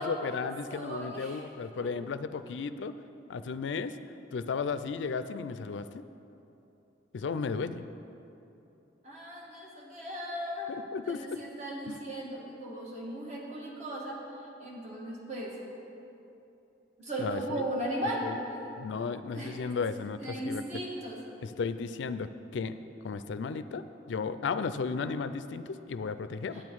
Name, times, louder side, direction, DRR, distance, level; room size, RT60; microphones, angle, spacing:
voice 1, 0.0-2.9 3.3-3.9 4.3-6.0 7.1-7.9 10.7-11.4 11.9-12.0 17.2-17.6 18.2-18.4 18.8-20.6 21.4-22.8 23.0-26.6, left 5 dB, 75° left, 12 dB, 0.4 m, -34 dB
voice 2, 0.7-1.9 9.0-10.7 11.0-14.2 14.6-15.5 17.0-18.7 19.3-19.6 20.2-21.2 26.5-26.6, right 1 dB, 40° right, -3 dB, 1.8 m, -37 dB
10.5 x 8.9 x 4.6 m, 2.9 s
head